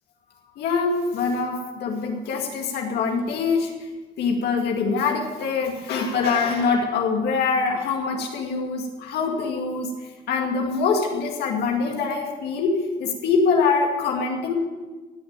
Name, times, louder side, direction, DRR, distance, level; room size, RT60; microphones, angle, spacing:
voice 1, 0.6-3.9 4.2-9.9 10.3-14.5, left 4 dB, 75° left, 2 dB, 2.1 m, -24 dB
17.0 x 6.2 x 8.9 m, 1.3 s
cardioid pair, 110°, 17 cm